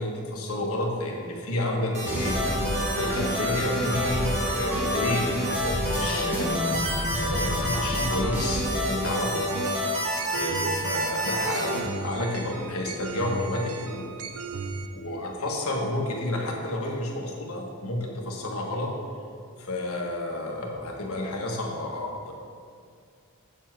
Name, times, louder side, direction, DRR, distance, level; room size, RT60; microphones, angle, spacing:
voice 1, 0.0-2.4 2.9-9.5 10.3-14.2 14.9-18.9 19.6-22.3, left 1 dB, 70° left, 0 dB, 1.4 m, -31 dB
sound 1, 1.9-11.8, equal, 30° right, 2.0 m, -29 dB
sound 2, 2.0-8.6, equal, 10° right, 1.2 m, -30 dB
sound 3, 9.5-14.9, right 4 dB, 80° right, 0.6 m, -36 dB
8.1 x 7.2 x 4.6 m, 2.3 s
head